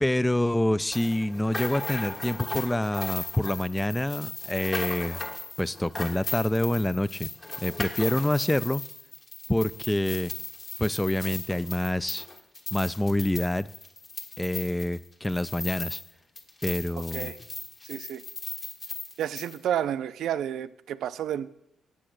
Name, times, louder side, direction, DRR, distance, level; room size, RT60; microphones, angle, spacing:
voice 1, 0.0-5.2 5.6-7.3 7.6-8.8 9.5-10.3 10.8-12.2 12.7-13.7 14.4-16.0 16.6-17.3, left 1 dB, 10° left, 16 dB, 0.3 m, -27 dB
sound 1, 0.9-16.1 16.4-19.6, left 3 dB, 30° left, 1.4 m, -37 dB
voice 2, 17.8-18.2 19.2-21.5, right 10 dB, 75° right, 13 dB, 0.4 m, -30 dB
8.5 x 7.7 x 6.2 m, 0.80 s
cardioid pair, 90°, 0 cm